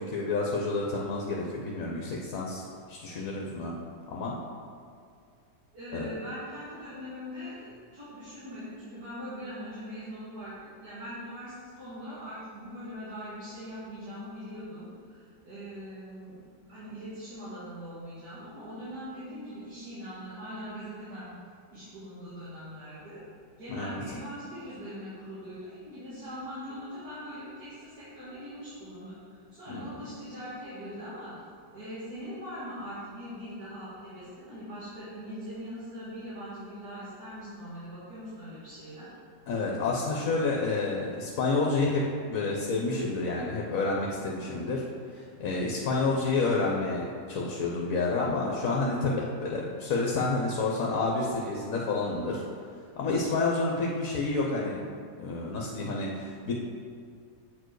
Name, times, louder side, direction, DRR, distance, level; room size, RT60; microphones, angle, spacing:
voice 1, 0.0-2.6 2.9-3.7 4.1-4.4 5.9-6.1 23.7-24.0 29.7-29.8 39.5-42.0 42.3-44.8 45.1-52.4 53.0-54.8 55.2-56.5, left 3 dB, 65° left, -2 dB, 1.2 m, -29 dB
voice 2, 5.7-10.5 10.8-21.3 21.7-23.2 23.6-31.3 31.7-39.1, equal, 70° right, -13 dB, 2.7 m, -41 dB
8.0 x 4.5 x 4.7 m, 2.3 s
omnidirectional pair, 1.7 m